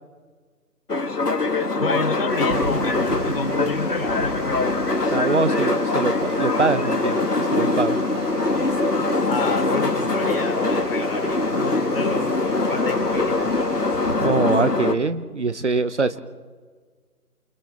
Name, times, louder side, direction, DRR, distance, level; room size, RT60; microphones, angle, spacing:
sound 1, 0.9-14.9, left 3 dB, 80° left, 2.1 m, -23 dB
voice 1, 1.8-4.5 9.3-13.4, left 3 dB, 35° left, 3 dB, 3.7 m, -29 dB
Water, 2.3-14.1, right 1 dB, 15° right, 7.2 m, -37 dB
voice 2, 5.1-8.0 14.2-16.2, right 3 dB, 50° right, 12 dB, 1.1 m, -23 dB
29.5 x 29.0 x 3.7 m, 1.5 s
figure-of-eight pair, 160°, 46 cm